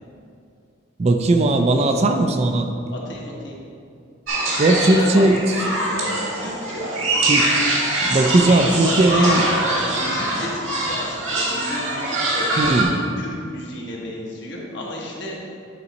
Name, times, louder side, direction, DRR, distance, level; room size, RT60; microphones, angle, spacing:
voice 1, 1.0-2.7 4.6-5.4 7.3-7.5 8.0-9.4 12.6-13.0, right 2 dB, 30° right, 5 dB, 0.4 m, -18 dB
voice 2, 2.9-3.6 4.7-7.2 8.5-9.4 9.7-12.5 13.2-15.5, left 1 dB, 60° left, -3 dB, 1.3 m, -32 dB
sound 1, 4.3-12.8, right 1 dB, 85° right, 1.6 m, -23 dB
9.7 x 4.1 x 4.2 m, 2.4 s
head